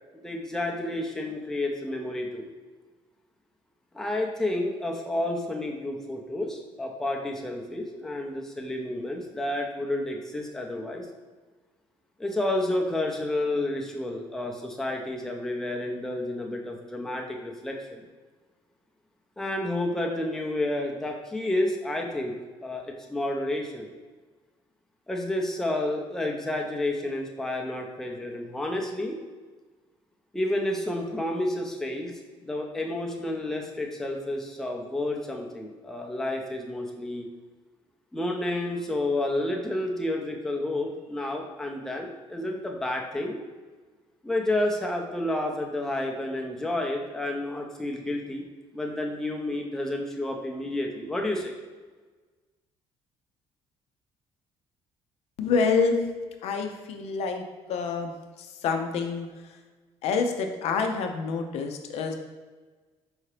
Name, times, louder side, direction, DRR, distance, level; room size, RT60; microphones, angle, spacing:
voice 1, 0.2-2.5 3.9-11.1 12.2-18.0 19.4-22.3 22.6-23.9 25.1-29.2 30.3-37.3 38.1-43.4 44.2-48.5 48.7-51.5, left 1 dB, 5° left, 0 dB, 0.5 m, -30 dB
voice 2, 55.4-56.0 56.4-57.4 57.7-58.1 58.4-59.6 60.0-62.1, left 5 dB, 70° left, 5 dB, 0.5 m, -27 dB
4.7 x 2.8 x 3.2 m, 1.3 s
cardioid pair, 125°, 11 cm